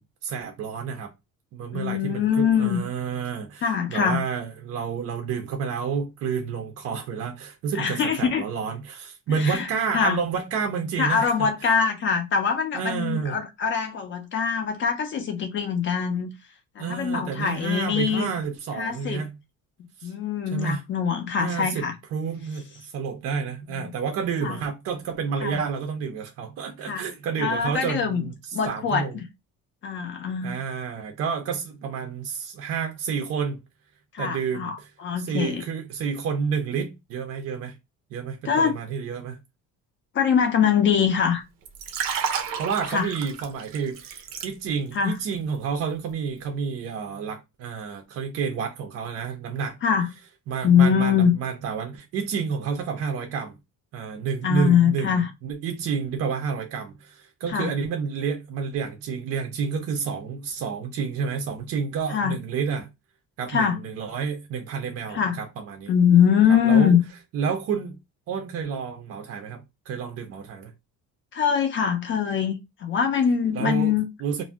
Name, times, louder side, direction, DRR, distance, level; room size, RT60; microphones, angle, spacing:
voice 1, 0.2-1.1 1.5-11.7 12.7-13.4 16.8-19.3 20.0-20.1 20.5-20.8 21.4-21.9 22.1-29.1 30.4-33.6 34.2-34.9 35.2-37.8 38.1-39.4 42.6-49.8 50.5-53.6 53.9-62.9 63.4-65.9 66.5-67.0 67.3-68.0 68.3-70.7 73.5-73.9 74.2-74.4, right 6 dB, 45° right, 0.5 m, -30 dB
voice 2, 1.7-2.8 3.6-4.2 7.7-8.4 9.3-9.7 9.9-10.2 11.0-16.3 16.8-18.3 18.8-19.2 20.0-21.9 23.7-23.9 24.4-24.6 25.4-25.6 26.8-27.1 27.4-28.3 28.5-29.3 29.8-30.6 34.1-35.6 38.4-38.8 40.1-41.4 42.9-43.1 44.9-45.1 49.8-50.1 50.6-51.4 54.4-55.3 57.5-57.7 62.1-62.3 63.5-63.8 65.1-65.4 65.9-67.0 71.3-72.5 72.8-74.1, left 7 dB, 35° left, 0.4 m, -23 dB
Liquid, 41.6-45.0 45.3-45.6, right 7 dB, 85° right, 0.7 m, -31 dB
2.5 x 2.0 x 3.2 m
cardioid pair, 175°, 33 cm